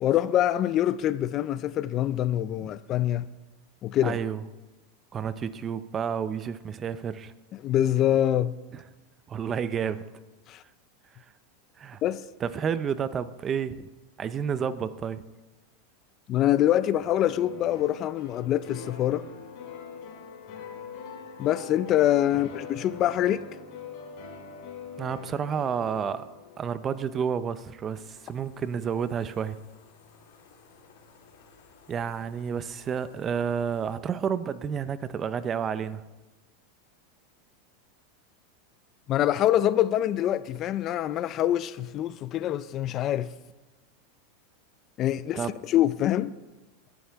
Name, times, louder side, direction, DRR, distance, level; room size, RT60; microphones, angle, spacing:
voice 1, 0.0-3.3 3.8-4.2 7.6-8.5 10.5-10.6 12.0-12.2 16.3-19.3 21.4-23.5 39.1-43.3 45.0-46.3, left 12 dB, 30° left, 0.4 m, -25 dB
voice 2, 4.0-4.4 5.1-7.3 9.3-10.0 11.8-12.0 12.4-13.7 14.2-15.2 25.0-26.3 26.6-29.6 31.9-36.0 45.3-45.5, right 7 dB, 20° right, 0.5 m, -30 dB
sound 1, 16.9-26.9, left 5 dB, 50° left, 3.8 m, -43 dB
sound 2, 27.9-34.0, left 5 dB, 75° left, 3.5 m, -57 dB
19.5 x 11.0 x 3.5 m
supercardioid pair, 155°, 0 cm